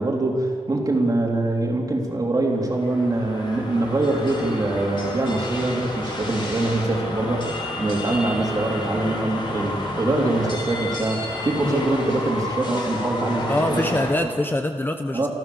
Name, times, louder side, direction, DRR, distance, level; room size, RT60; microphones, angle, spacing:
voice 1, 0.0-13.9 14.2-14.3 15.1-15.3, right 2 dB, 30° right, 0 dB, 3.4 m, -23 dB
sound 1, 2.6-14.1, left 1 dB, 45° left, 4.1 m, -31 dB
voice 2, 13.5-15.3, left 1 dB, 15° left, 6 dB, 0.8 m, -24 dB
27.0 x 13.5 x 7.1 m, 2.1 s
wide cardioid pair, 150°, 11 cm